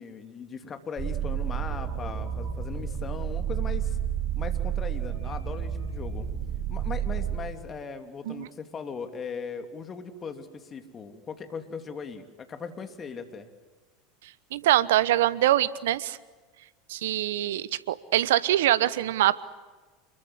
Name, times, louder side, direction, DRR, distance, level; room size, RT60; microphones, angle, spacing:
voice 1, 0.0-4.0 4.4-6.3 6.7-13.5, left 5 dB, 30° left, 7 dB, 3.1 m, -39 dB
sound 1, 1.0-7.4, right 9 dB, 40° right, 5.1 m, -30 dB
voice 2, 14.5-16.2 16.9-19.4, right 13 dB, 70° right, 18 dB, 1.0 m, -24 dB
28.0 x 22.5 x 8.0 m, 1.3 s
hypercardioid pair, 85°, 0 cm